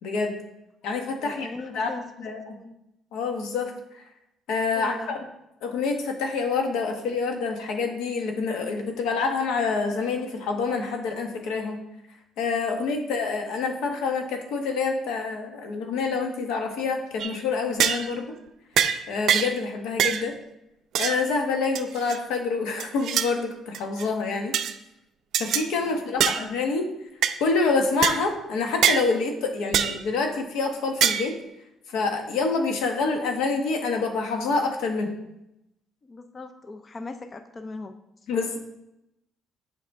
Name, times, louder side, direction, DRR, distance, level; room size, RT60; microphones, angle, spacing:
voice 1, 0.0-0.3 0.8-1.9 2.2-2.6 3.1-4.0 4.5-5.0 5.6-11.8 12.4-18.3 19.1-20.3 21.0-24.5 25.4-26.9 27.4-31.3 31.9-35.1 38.3-38.6, left 4 dB, 90° left, 4 dB, 1.1 m, -27 dB
voice 2, 1.2-2.1 2.5-2.8 4.8-5.1 13.0-13.1 25.8-26.3 36.0-37.9, left 3 dB, 25° left, 8 dB, 0.4 m, -39 dB
sound 1, 17.2-17.4 17.8-18.1 18.8-19.0 19.3-19.6 20.0-20.2 20.9-21.2 21.7-22.2 22.8-23.3 23.7-24.1 24.5-24.7 25.3-25.7 26.2-26.4 27.2-27.4 28.0-28.2 28.8-29.0 29.7-30.0 31.0-31.3, right 9 dB, 60° right, 0.4 m, -23 dB
7.9 x 4.7 x 3.6 m, 0.86 s
cardioid pair, 150°, 0 cm